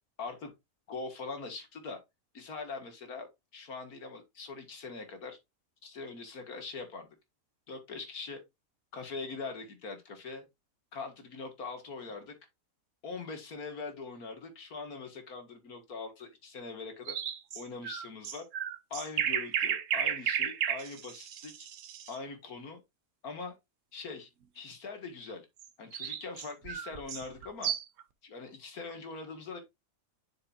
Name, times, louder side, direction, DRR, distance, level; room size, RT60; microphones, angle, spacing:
voice 1, 0.2-0.5 0.9-2.0 2.3-3.3 3.5-5.4 5.8-7.1 7.7-8.4 8.9-10.4 10.9-12.3 13.0-17.2 17.5-18.4 18.9-21.7 22.1-22.8 23.2-23.6 23.9-24.3 24.5-25.5 25.8-27.7 28.2-29.6, left 4 dB, 85° left, 2.3 m, -42 dB
sound 1, 17.1-22.2 25.6-28.0, right 9 dB, 65° right, 1.1 m, -33 dB
7.1 x 6.5 x 2.5 m
omnidirectional pair, 1.5 m